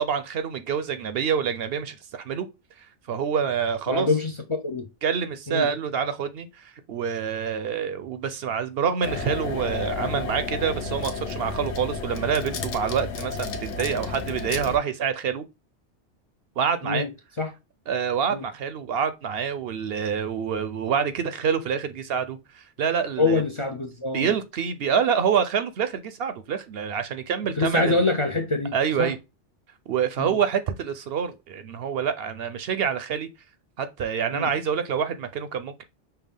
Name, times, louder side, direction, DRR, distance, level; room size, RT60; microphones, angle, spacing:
voice 1, 0.0-2.5 3.1-4.1 5.0-15.4 16.6-17.1 17.9-23.4 24.1-28.0 28.7-29.2 29.9-33.3 33.8-35.8, right 7 dB, 65° right, 0.7 m, -27 dB
voice 2, 3.9-4.9 5.5-5.7 16.8-17.1 17.4-17.5 18.3-18.4 23.2-24.3 27.6-29.1 30.2-30.4 34.3-34.5, left 3 dB, 35° left, 0.5 m, -25 dB
sound 1, 9.0-14.8, left 4 dB, 80° left, 1.0 m, -32 dB
5.6 x 2.3 x 3.5 m
omnidirectional pair, 1.2 m